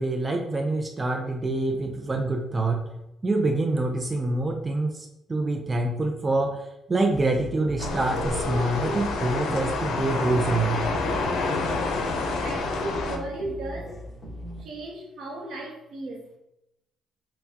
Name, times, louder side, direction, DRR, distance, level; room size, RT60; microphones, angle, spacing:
voice 1, 0.0-2.8 3.2-10.8, right 2 dB, 25° right, 2 dB, 0.5 m, -26 dB
sound 1, 7.1-14.6, equal, 25° left, 1.3 m, -39 dB
sound 2, 7.8-13.2, left 3 dB, 80° left, 0.5 m, -28 dB
voice 2, 12.3-14.0 14.6-16.4, right 2 dB, 70° right, 0 dB, 0.8 m, -35 dB
4.3 x 2.2 x 2.8 m, 0.87 s
cardioid pair, 90°, 0 cm